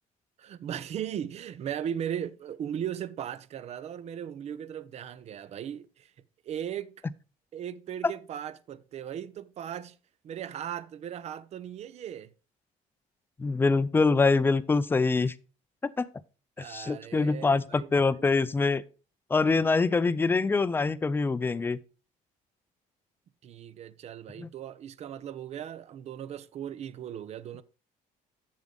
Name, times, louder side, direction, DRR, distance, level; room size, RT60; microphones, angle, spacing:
voice 1, 0.4-6.1 6.4-7.0 7.5-10.0 10.2-12.3 16.6-18.6 23.4-27.6, right 9 dB, 45° right, 0.6 m, -38 dB
voice 2, 13.4-15.3 15.8-16.1 16.6-18.8 19.3-21.8 24.4-24.5, left 4 dB, 15° left, 0.4 m, -25 dB
7.4 x 7.2 x 3.8 m
cardioid pair, 120°, 15 cm